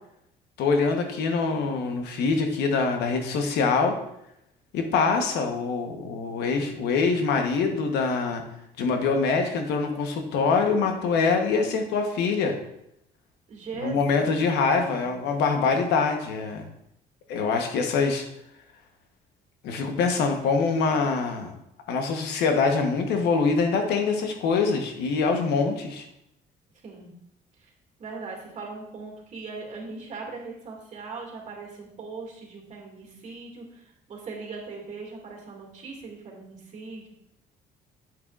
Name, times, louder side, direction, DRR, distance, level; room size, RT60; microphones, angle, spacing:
voice 1, 0.6-4.0 4.7-8.4 8.8-12.6 13.8-16.6 17.3-18.3 19.6-21.5 21.9-26.0, left 4 dB, 80° left, 4 dB, 1.1 m, -24 dB
voice 2, 13.5-15.2 26.8-27.1 27.6-27.7 28.0-37.1, right 4 dB, 45° right, -1 dB, 2.2 m, -40 dB
7.8 x 7.0 x 2.5 m, 0.79 s
cardioid pair, 110°, 17 cm